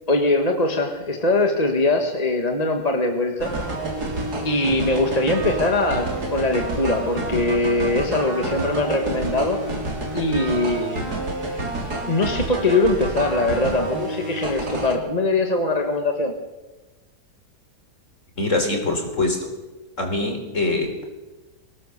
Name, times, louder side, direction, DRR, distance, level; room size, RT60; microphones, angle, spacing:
voice 1, 0.1-3.5 4.4-9.6 10.1-11.1 12.1-16.3, left 2 dB, 25° left, 3 dB, 1.5 m, -22 dB
sound 1, 3.4-14.9, right 2 dB, 70° right, 3.5 m, -29 dB
voice 2, 18.4-19.5 20.0-21.0, left 2 dB, 50° left, 3 dB, 4.3 m, -23 dB
23.0 x 18.5 x 6.7 m, 1.2 s
omnidirectional pair, 1.7 m